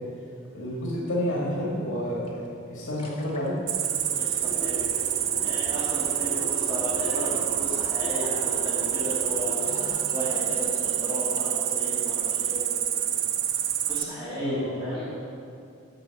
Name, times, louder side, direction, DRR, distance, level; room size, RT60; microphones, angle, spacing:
voice 1, 0.5-3.5 14.4-14.8, equal, 65° left, -5 dB, 1.9 m, -30 dB
sound 1, 2.3-2.4 2.7-11.8 12.1-12.2, equal, 30° left, 1.3 m, -40 dB
Cricket, 3.7-14.0, right 10 dB, 70° right, 0.5 m, -27 dB
voice 2, 4.1-4.9 5.4-9.6 10.1-12.8 13.9-15.1, equal, 15° right, -11 dB, 2.1 m, -34 dB
9.0 x 5.9 x 7.5 m, 2.5 s
head